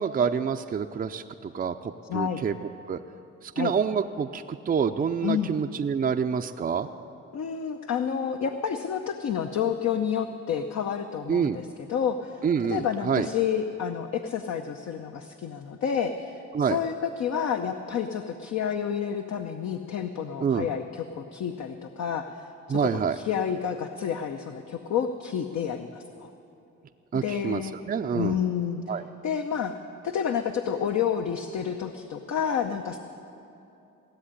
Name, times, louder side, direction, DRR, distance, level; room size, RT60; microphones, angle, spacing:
voice 1, 0.0-2.5 2.9-3.0 3.6-6.9 11.3-11.6 12.4-13.3 16.5-16.8 20.4-20.7 22.7-23.2 27.1-27.6 27.9-28.4 28.9-29.0, right 6 dB, 30° right, 5 dB, 0.5 m, -27 dB
voice 2, 2.1-2.4 3.6-3.7 5.2-5.5 7.3-26.3 27.1-27.8 28.1-29.8 30.0-33.0, left 8 dB, 60° left, 6 dB, 0.8 m, -30 dB
16.5 x 7.4 x 9.9 m, 2.8 s
cardioid pair, 90°, 30 cm